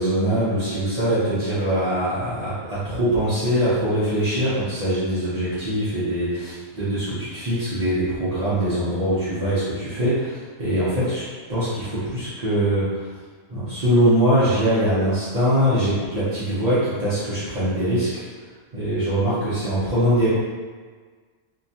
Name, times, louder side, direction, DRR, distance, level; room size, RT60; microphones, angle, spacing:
voice 1, 0.0-11.2 11.5-13.1 13.5-18.2 18.7-20.3, equal, 55° right, -12 dB, 0.4 m, -22 dB
2.7 x 2.2 x 2.7 m, 1.5 s
omnidirectional pair, 1.5 m